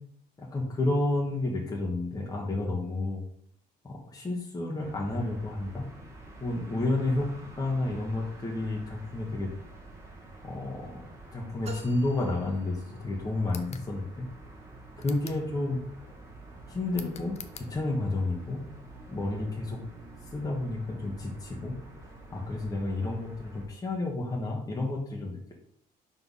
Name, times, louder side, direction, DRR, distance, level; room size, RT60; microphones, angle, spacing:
voice 1, 0.4-3.2 3.8-5.8 6.4-7.3 7.6-9.5 10.4-11.1 11.3-14.3 15.0-15.8 16.7-18.6 19.1-19.8 20.3-21.8 22.3-25.5, left 2 dB, 20° left, -2 dB, 1.3 m, -31 dB
sound 1, 4.8-23.7, right 2 dB, 15° right, 1.5 m, -48 dB
sound 2, 11.6-13.3, right 4 dB, 40° right, 1.1 m, -46 dB
sound 3, 13.4-13.9 15.0-15.5 16.9-17.7, left 7 dB, 40° left, 0.6 m, -45 dB
4.5 x 4.1 x 5.6 m, 0.63 s
cardioid pair, 110°, 17 cm